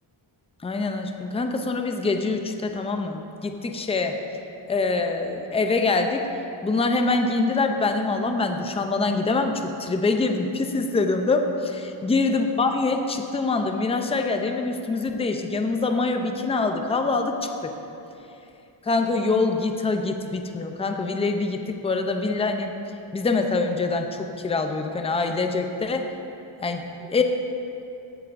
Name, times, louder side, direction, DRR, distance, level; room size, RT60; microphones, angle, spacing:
voice 1, 0.6-4.2 4.7-6.2 6.6-17.5 18.8-22.7 23.1-26.1 26.6-27.2, left 3 dB, 15° left, 5 dB, 0.4 m, -24 dB
14.5 x 8.0 x 2.5 m, 2.8 s
wide cardioid pair, 175°, 49 cm